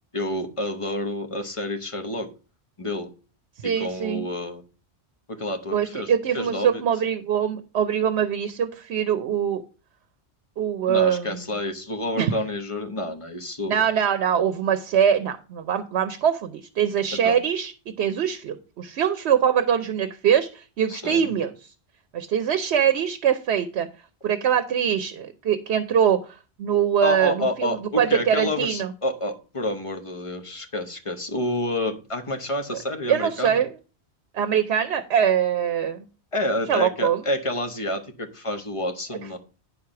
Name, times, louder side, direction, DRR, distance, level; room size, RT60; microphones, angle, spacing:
voice 1, 0.1-2.3 2.8-3.1 3.6-4.6 5.3-6.8 10.9-13.8 17.1-17.4 20.9-21.3 27.0-33.6 36.3-39.4, left 1 dB, 30° left, 5 dB, 1.0 m, -29 dB
voice 2, 3.6-4.3 5.7-9.6 10.6-11.4 12.2-12.3 13.7-17.7 18.0-21.5 22.1-23.9 24.2-26.3 26.6-28.9 33.1-33.7 34.3-36.1 36.7-37.2, right 8 dB, 75° right, 10 dB, 0.9 m, -23 dB
9.5 x 4.7 x 5.8 m, 0.36 s
omnidirectional pair, 1.1 m